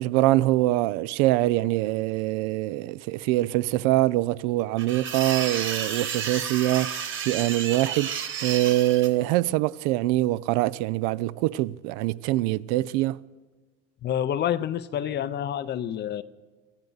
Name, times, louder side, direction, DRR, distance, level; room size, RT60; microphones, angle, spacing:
voice 1, 0.0-8.1 8.4-13.2, right 17 dB, 70° right, 0.5 m, -24 dB
sound 1, 4.8-9.1, right 7 dB, 35° right, 1.4 m, -31 dB
voice 2, 14.0-16.2, left 10 dB, 30° left, 0.5 m, -28 dB
23.5 x 14.5 x 4.0 m
cardioid pair, 135°, 34 cm